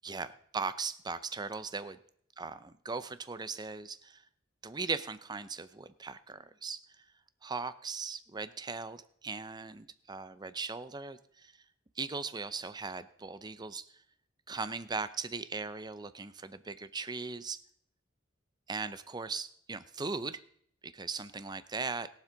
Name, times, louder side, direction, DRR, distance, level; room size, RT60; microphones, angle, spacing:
voice 1, 0.0-2.0 2.4-4.2 4.6-7.0 7.4-11.5 12.0-13.9 14.5-17.6 18.7-20.4 20.8-22.1, right 4 dB, 20° right, 13 dB, 0.6 m, -39 dB
21.0 x 7.4 x 3.9 m, 0.64 s
head